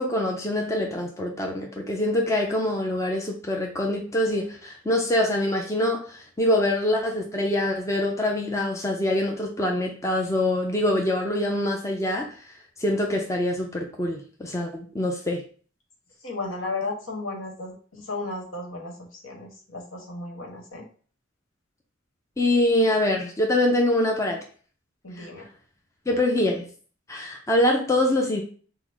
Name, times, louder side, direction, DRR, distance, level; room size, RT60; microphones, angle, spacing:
voice 1, 0.0-12.4 12.8-15.4 22.4-24.4 25.2-25.3 26.1-26.7 27.1-28.4, left 1 dB, 15° left, 1 dB, 0.5 m, -24 dB
voice 2, 16.2-20.8 25.0-25.4, left 3 dB, 70° left, 0 dB, 1.2 m, -34 dB
3.9 x 2.1 x 4.5 m, 0.41 s
head